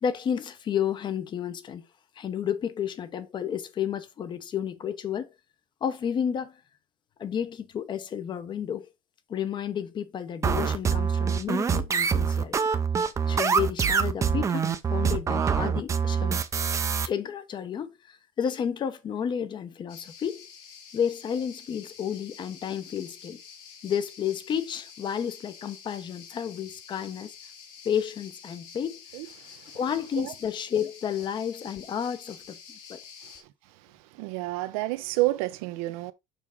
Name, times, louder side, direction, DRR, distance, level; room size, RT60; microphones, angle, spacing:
voice 1, 0.0-1.9 2.2-5.3 5.8-6.6 7.2-8.9 9.3-12.6 13.3-16.4 17.0-20.5 20.9-23.4 23.8-27.4 27.8-29.0 29.7-32.6 32.9-33.0, left 8 dB, 25° left, 0.8 m, -31 dB
sound 1, 10.4-17.1, right 6 dB, 15° right, 0.6 m, -25 dB
sound 2, 19.9-33.4, left 6 dB, 70° left, 2.1 m, -48 dB
voice 2, 34.1-36.1, right 19 dB, 90° right, 0.9 m, -29 dB
6.9 x 4.7 x 3.6 m
cardioid pair, 160°, 18 cm